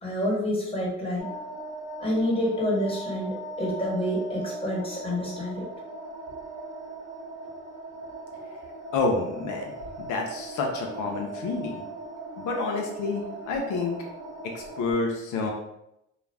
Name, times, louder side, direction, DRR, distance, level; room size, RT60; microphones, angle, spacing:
voice 1, 0.0-1.3 2.0-5.7, equal, 20° left, -5 dB, 1.2 m, -28 dB
sound 1, 1.2-14.9, right 2 dB, 65° right, 0.9 m, -39 dB
voice 2, 8.9-11.8 12.4-14.1 14.4-15.5, left 3 dB, 85° left, 1 dB, 0.5 m, -29 dB
2.3 x 2.0 x 3.3 m, 0.85 s
cardioid pair, 90°, 30 cm